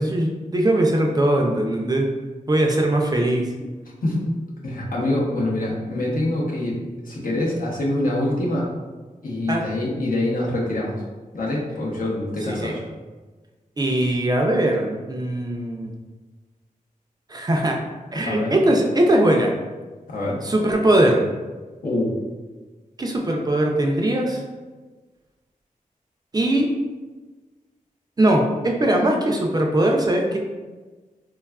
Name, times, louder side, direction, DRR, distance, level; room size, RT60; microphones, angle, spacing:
voice 1, 0.0-2.1 2.5-3.5 9.5-9.7 12.5-12.7 13.8-15.9 17.3-17.8 18.1-19.5 20.4-21.2 23.0-24.4 26.3-26.7 28.2-30.4, right 1 dB, 30° right, 1 dB, 0.3 m, -20 dB
voice 2, 4.6-8.7 9.2-11.0 11.3-12.9 18.2-18.6 20.1-20.4 21.8-22.2, left 1 dB, 75° left, -4 dB, 0.7 m, -25 dB
3.3 x 2.3 x 2.2 m, 1.3 s
wide cardioid pair, 100°, 14 cm